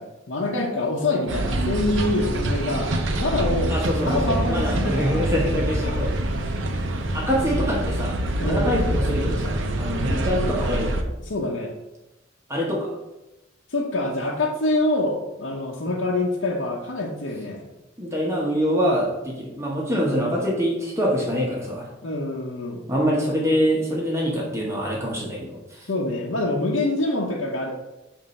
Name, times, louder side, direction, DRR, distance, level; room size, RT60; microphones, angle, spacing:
voice 1, 0.0-2.9 3.2-3.7 4.0-5.3 5.5-6.0 8.4-8.9 11.2-11.7 13.7-17.7 22.0-22.8 25.9-27.7, left 2 dB, 80° left, -2 dB, 0.9 m, -26 dB
sound 1, 1.3-11.0, right 1 dB, 75° right, 0.7 m, -25 dB
voice 2, 3.7-6.1 7.1-8.2 8.4-11.0 12.5-12.9 15.9-16.0 18.0-21.9 22.9-25.6, equal, 15° right, -4 dB, 1.1 m, -25 dB
7.2 x 2.7 x 5.3 m, 0.99 s
head